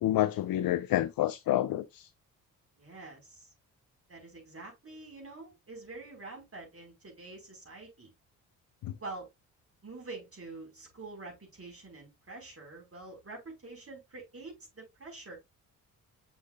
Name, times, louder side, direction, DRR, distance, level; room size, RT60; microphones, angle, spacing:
voice 1, 0.0-2.1 8.8-9.0, left 13 dB, 60° left, 0.6 m, -28 dB
voice 2, 2.8-3.5 4.1-8.1 9.0-9.3 9.8-15.4, right 3 dB, 35° right, 5.0 m, -46 dB
6.5 x 6.5 x 2.5 m
hypercardioid pair, 50°, 41 cm